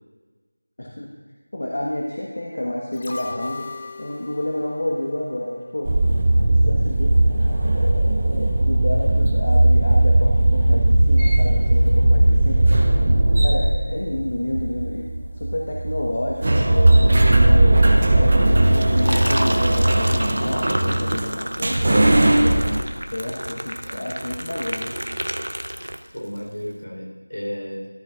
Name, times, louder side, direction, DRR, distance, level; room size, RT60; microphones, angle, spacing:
voice 1, 0.8-1.1 1.5-3.7 4.0-5.9 6.4-7.1 7.7-12.6 13.4-15.1 15.3-16.9 17.3-22.6 23.1-25.0, left 1 dB, 45° left, -3 dB, 1.2 m, -29 dB
sound 1, 2.9-6.1 6.4-6.5, left 3 dB, 25° left, 0.7 m, -38 dB
sound 2, 5.8-22.8, right 1 dB, 30° right, 1.0 m, -18 dB
voice 2, 13.0-13.4 26.1-27.9, equal, 75° left, -1 dB, 4.0 m, -33 dB
Liquid, 18.7-26.4, equal, 80° right, 0.8 m, -30 dB
13.5 x 13.0 x 2.5 m, 1.4 s
figure-of-eight pair, 170°, 0 cm